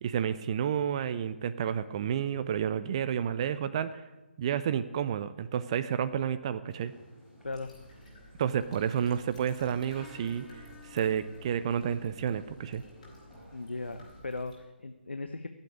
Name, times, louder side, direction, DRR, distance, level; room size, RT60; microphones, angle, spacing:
voice 1, 0.0-4.0 4.4-6.9 8.4-10.5 10.8-12.8, right 8 dB, 30° right, 13 dB, 0.6 m, -30 dB
sound 1, 6.7-14.2, left 1 dB, ahead, 4.7 m, -54 dB
sound 2, 7.4-14.6, equal, 35° left, 4.9 m, -55 dB
voice 2, 13.5-15.5, left 3 dB, 70° left, 9 dB, 1.0 m, -38 dB
16.0 x 8.2 x 9.9 m, 1.2 s
figure-of-eight pair, 145°, 6 cm